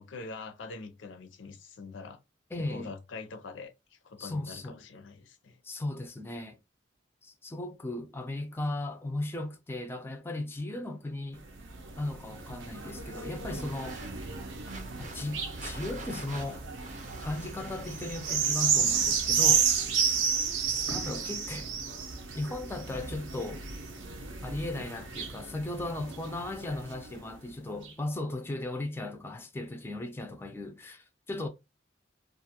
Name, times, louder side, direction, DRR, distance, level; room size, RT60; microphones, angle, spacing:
voice 1, 0.0-2.2 2.7-5.6, left 4 dB, 90° left, 0.5 m, -44 dB
voice 2, 2.5-2.9 4.2-4.8 5.6-6.6 7.2-11.4 12.0-14.2 15.0-16.6 17.2-19.7 20.9-21.7 22.3-23.6 24.4-31.5, left 2 dB, 15° left, 0.3 m, -36 dB
sound 1, 11.4-27.2 27.8-27.9, right 6 dB, 85° right, 0.6 m, -32 dB
sound 2, 13.6-18.9, right 3 dB, 40° right, 0.5 m, -48 dB
2.4 x 2.2 x 2.8 m
head